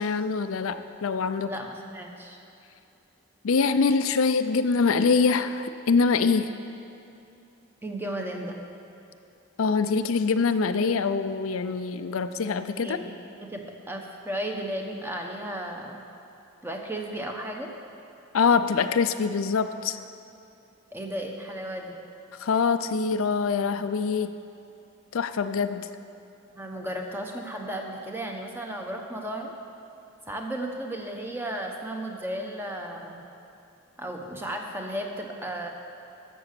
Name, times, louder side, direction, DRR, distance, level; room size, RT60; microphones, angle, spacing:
voice 1, 0.0-1.6 3.4-6.5 9.6-13.0 18.3-20.0 22.4-24.3 25.1-25.9, left 5 dB, 85° left, 10 dB, 0.5 m, -24 dB
voice 2, 1.4-2.4 7.8-8.6 12.8-13.1 13.4-16.0 16.6-17.7 20.9-22.0 26.6-29.5 30.3-33.3 34.0-35.7, right 1 dB, 10° right, 2 dB, 0.9 m, -34 dB
13.0 x 7.0 x 6.7 m, 2.8 s
head